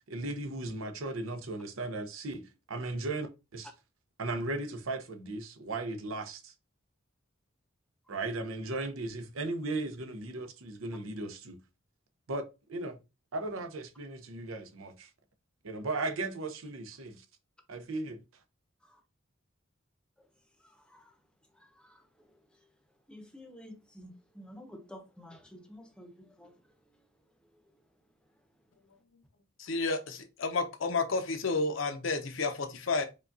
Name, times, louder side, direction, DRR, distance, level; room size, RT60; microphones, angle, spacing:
voice 1, 0.1-3.7 4.2-6.5 8.1-11.6 12.3-13.0 13.3-15.1 15.6-17.2 17.7-18.2, right 2 dB, 90° right, 0.7 m, -36 dB
voice 2, 20.6-21.2 21.5-22.3 23.1-26.6, left 1 dB, 5° left, 0.7 m, -51 dB
voice 3, 29.6-33.1, left 3 dB, 70° left, 0.6 m, -31 dB
4.9 x 2.3 x 2.6 m
head